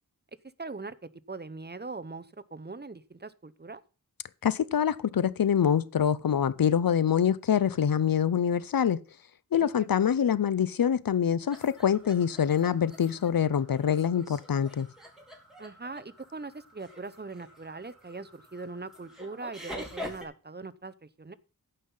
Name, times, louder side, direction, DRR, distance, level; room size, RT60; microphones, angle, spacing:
voice 1, 0.6-0.9 1.3-3.8 9.6-9.9 15.6-21.4, right 3 dB, 30° right, 0.9 m, -41 dB
voice 2, 4.4-9.0 9.5-14.9, left 8 dB, 75° left, 0.7 m, -25 dB
sound 1, 11.5-20.2, left 1 dB, ahead, 4.3 m, -46 dB
15.0 x 5.6 x 5.6 m
wide cardioid pair, 55°, 35 cm